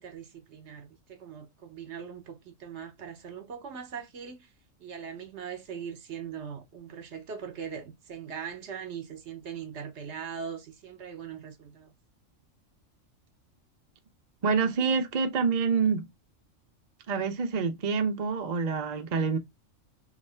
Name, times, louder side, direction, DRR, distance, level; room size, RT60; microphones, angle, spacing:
voice 1, 0.0-4.5 4.8-11.9, right 7 dB, 60° right, 1.1 m, -40 dB
voice 2, 14.4-16.1 17.1-19.4, right 5 dB, 45° right, 0.5 m, -27 dB
3.2 x 3.0 x 4.2 m
omnidirectional pair, 1.3 m